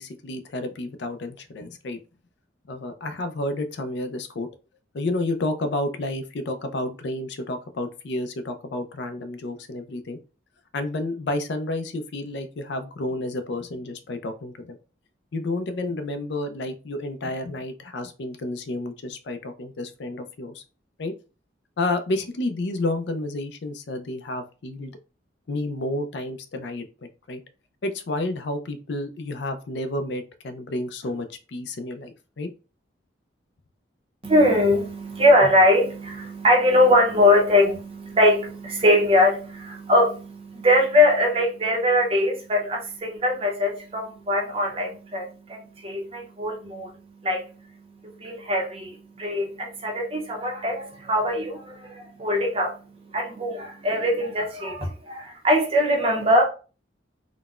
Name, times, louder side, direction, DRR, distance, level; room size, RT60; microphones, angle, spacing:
voice 1, 0.0-2.0 2.7-4.5 4.9-10.2 10.7-14.8 15.3-20.6 21.0-21.1 21.8-24.9 25.5-26.9 27.3-27.4 27.8-32.5, left 2 dB, 65° left, 0.5 m, -30 dB
voice 2, 34.2-56.4, left 1 dB, 30° right, 0.6 m, -22 dB
3.9 x 2.1 x 2.4 m
head